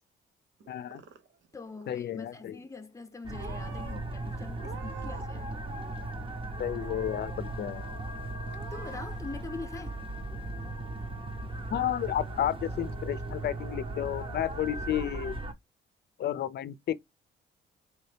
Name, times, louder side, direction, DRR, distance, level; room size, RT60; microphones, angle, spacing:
Purr / Meow, 0.6-1.5 1.7-2.3 3.0-3.1 3.4-4.0 4.5-5.4 5.7-6.4 6.8-7.4 7.8-7.9 8.4-9.2, right 7 dB, 70° right, 0.8 m, -48 dB
voice 1, 0.7-1.0 1.9-2.6 6.6-7.9 11.7-15.4 16.2-16.9, left 11 dB, 55° left, 0.5 m, -32 dB
voice 2, 1.5-5.5 8.7-9.9, left 3 dB, 15° left, 0.9 m, -43 dB
sound 1, 3.2-15.5, right 2 dB, 25° right, 0.9 m, -37 dB
4.6 x 2.8 x 3.3 m
cardioid pair, 90°, 20 cm